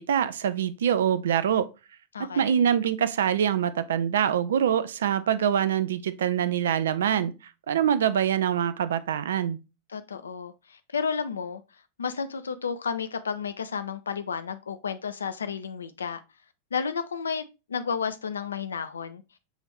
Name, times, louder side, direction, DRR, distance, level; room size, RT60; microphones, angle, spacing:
voice 1, 0.0-1.7 2.4-7.3 7.7-9.6, right 9 dB, 60° right, 0.3 m, -24 dB
voice 2, 2.1-2.6 9.9-11.6 12.0-16.2 16.7-17.4 17.7-19.2, left 6 dB, 70° left, 0.4 m, -32 dB
6.2 x 2.6 x 3.0 m
figure-of-eight pair, 90°, 0 cm